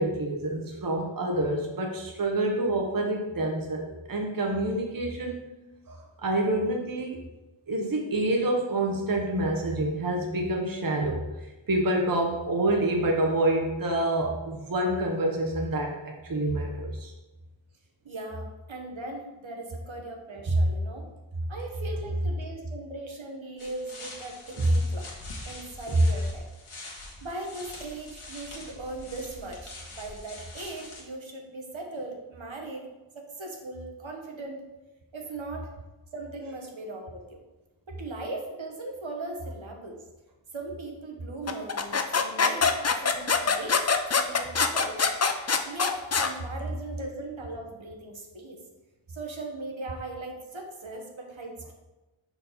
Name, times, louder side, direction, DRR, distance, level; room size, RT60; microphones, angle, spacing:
voice 1, 0.0-5.5 5.9-7.2 7.7-11.2 11.7-17.1 24.5-24.7 25.9-26.0, right 1 dB, 45° right, 1 dB, 0.8 m, -27 dB
voice 2, 18.0-21.1 21.5-25.1 25.4-26.4 27.2-34.6 35.1-35.7 36.1-37.4 37.9-40.1 40.5-43.8 44.1-45.0 45.4-48.6 49.1-51.7, right 2 dB, 70° right, 1 dB, 1.1 m, -39 dB
sound 1, 23.6-31.0, left 2 dB, 85° left, 1.4 m, -44 dB
sound 2, 41.5-46.3, left 5 dB, 35° left, 0.5 m, -24 dB
5.3 x 4.5 x 4.0 m, 1.1 s
wide cardioid pair, 45°, 49 cm